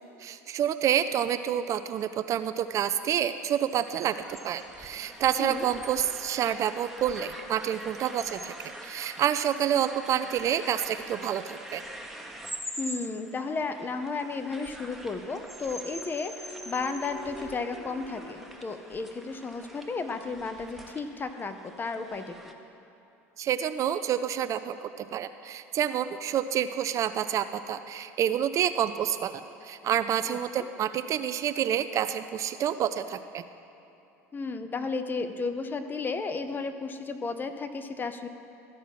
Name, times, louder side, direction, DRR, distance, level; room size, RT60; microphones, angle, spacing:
voice 1, 0.2-11.8 23.4-33.4, right 10 dB, 40° right, 11 dB, 0.4 m, -28 dB
sound 1, 3.7-22.5, right 1 dB, ahead, 1.0 m, -44 dB
voice 2, 12.8-22.5 30.3-30.7 34.3-38.3, left 4 dB, 25° left, 9 dB, 0.7 m, -33 dB
sound 2, 15.7-19.5, left 1 dB, 40° left, 1.8 m, -47 dB
13.5 x 4.6 x 5.9 m, 3.0 s
hypercardioid pair, 75°, 8 cm